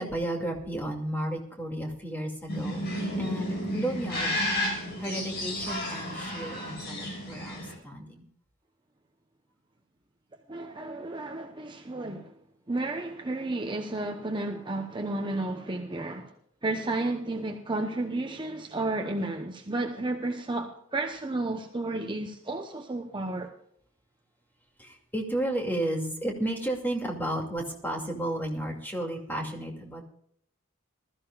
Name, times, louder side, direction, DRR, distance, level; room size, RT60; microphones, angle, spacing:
voice 1, 0.0-2.8 3.2-4.4 4.7-8.3 24.8-30.0, right 1 dB, 10° left, 2.4 m, -33 dB
sound 1, 2.5-7.7, equal, 50° left, 6.1 m, -32 dB
voice 2, 10.5-12.3 12.7-16.3 16.6-23.5, right 2 dB, 25° right, 0.9 m, -32 dB
20.0 x 13.5 x 2.4 m
head